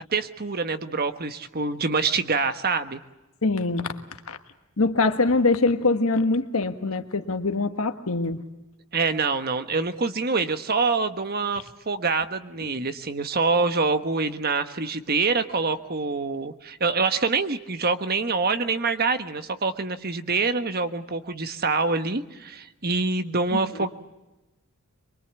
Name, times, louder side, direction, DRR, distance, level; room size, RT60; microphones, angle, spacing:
voice 1, 0.1-3.0 8.9-23.9, right 4 dB, 45° right, 9 dB, 1.3 m, -25 dB
voice 2, 3.4-4.0 4.3-4.4 4.8-8.4 23.5-23.6, left 3 dB, 75° left, 8 dB, 1.5 m, -23 dB
23.5 x 23.5 x 8.2 m, 1.0 s
head